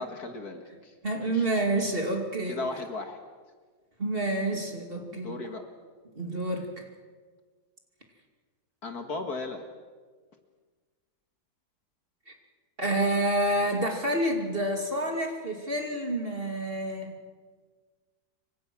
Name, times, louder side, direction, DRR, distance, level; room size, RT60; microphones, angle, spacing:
voice 1, 0.0-1.5 2.5-3.2 5.2-5.7 8.8-9.6, left 3 dB, 55° left, 5 dB, 2.4 m, -36 dB
voice 2, 1.0-2.6 4.0-5.4 6.2-6.9 12.3-12.4 12.8-17.2, right 1 dB, 30° right, 3 dB, 2.8 m, -28 dB
27.0 x 24.5 x 6.2 m, 1.5 s
omnidirectional pair, 2.0 m